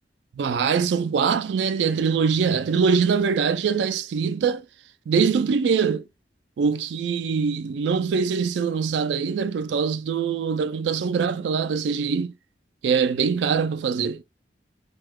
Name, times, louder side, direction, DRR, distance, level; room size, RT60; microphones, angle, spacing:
voice 1, 0.4-4.6 5.1-6.0 6.6-12.3 12.8-14.2, right 6 dB, 75° right, 0.3 m, -23 dB
2.8 x 2.3 x 3.5 m
head